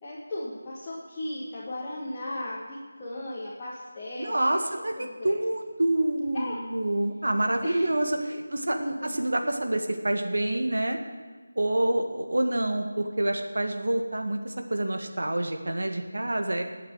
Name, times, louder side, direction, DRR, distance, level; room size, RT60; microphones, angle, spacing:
voice 1, 0.0-4.7 5.0-5.3 6.3-6.6 7.6-7.9 8.3-8.4 8.7-9.1, left 1 dB, 15° left, -9 dB, 1.8 m, -36 dB
voice 2, 4.2-11.0 11.5-16.6, right 1 dB, 75° right, 5 dB, 1.7 m, -27 dB
20.5 x 8.0 x 4.8 m, 1.5 s
figure-of-eight pair, 165°, 0 cm